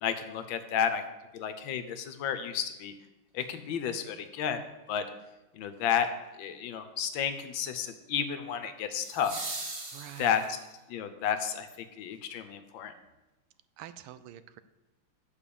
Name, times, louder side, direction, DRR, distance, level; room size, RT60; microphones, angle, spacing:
voice 1, 0.0-1.0 1.3-2.9 3.3-4.6 4.9-5.0 5.5-6.1 6.4-9.3 10.2-10.4 10.9-12.9, left 8 dB, 70° left, 9 dB, 1.4 m, -32 dB
sound 1, 3.4-3.5 9.0-10.8 13.0-13.1, right 2 dB, 30° right, 1.3 m, -40 dB
voice 2, 9.9-10.4 13.8-14.6, right 12 dB, 85° right, 13 dB, 1.5 m, -46 dB
8.8 x 5.0 x 7.0 m, 1.0 s
omnidirectional pair, 2.3 m